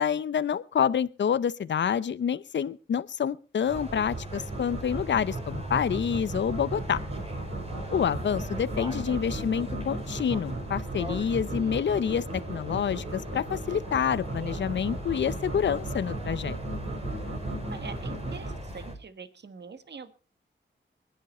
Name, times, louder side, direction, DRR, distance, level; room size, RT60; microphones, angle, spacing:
voice 1, 0.0-7.0 7.9-16.6, left 8 dB, 65° left, 17 dB, 0.6 m, -28 dB
sound 1, 3.7-19.0, right 1 dB, 30° right, 4.7 m, -40 dB
sound 2, 3.7-18.5, right 2 dB, 85° right, 3.9 m, -36 dB
voice 2, 11.3-11.8 17.7-20.1, right 5 dB, 60° right, 11 dB, 1.5 m, -44 dB
21.5 x 10.5 x 4.2 m, 0.35 s
cardioid pair, 75°, 20 cm